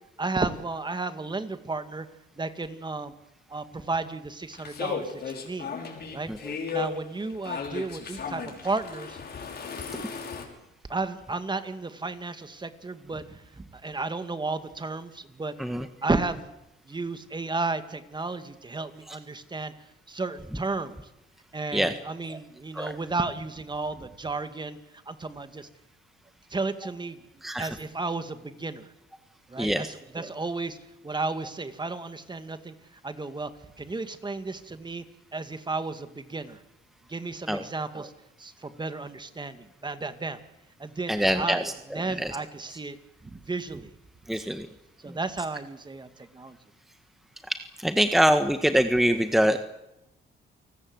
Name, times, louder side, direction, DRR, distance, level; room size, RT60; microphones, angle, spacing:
voice 1, 0.2-2.1 2.4-3.1 3.5-5.7 6.1-6.3 6.7-9.2 10.9-15.5 16.0-16.5 16.9-19.7 20.1-21.0 21.5-24.8 25.1-25.7 26.5-27.2 27.6-28.9 29.5-30.8 31.0-32.7 33.0-33.5 33.8-35.0 35.3-36.6 37.1-38.1 38.4-40.4 40.8-43.0 43.2-43.9 44.3-44.5 45.0-46.6, right 3 dB, 20° right, 10 dB, 2.2 m, -33 dB
sound 1, 4.5-10.4, left 6 dB, 55° left, 6.1 m, -35 dB
voice 2, 29.6-29.9 37.5-37.6 41.1-42.3 44.3-44.7 45.1-45.2 47.5-49.6, equal, ahead, 8 dB, 1.5 m, -24 dB
29.0 x 19.0 x 8.0 m, 0.93 s
cardioid pair, 90°, 20 cm